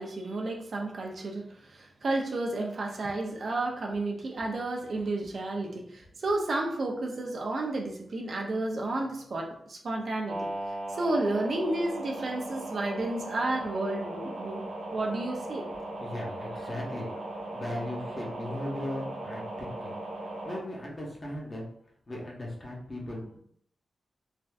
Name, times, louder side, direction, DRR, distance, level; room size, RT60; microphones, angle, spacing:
voice 1, 0.0-10.5 11.0-14.6 14.9-15.7, right 2 dB, 50° right, 1 dB, 0.4 m, -31 dB
sound 1, 10.2-20.6, right 1 dB, 90° right, 0.8 m, -38 dB
voice 2, 16.0-17.1 17.5-20.0 20.4-21.7 22.1-23.4, left 1 dB, 25° left, -3 dB, 0.7 m, -37 dB
3.3 x 2.5 x 2.3 m, 0.66 s
wide cardioid pair, 170°, 0 cm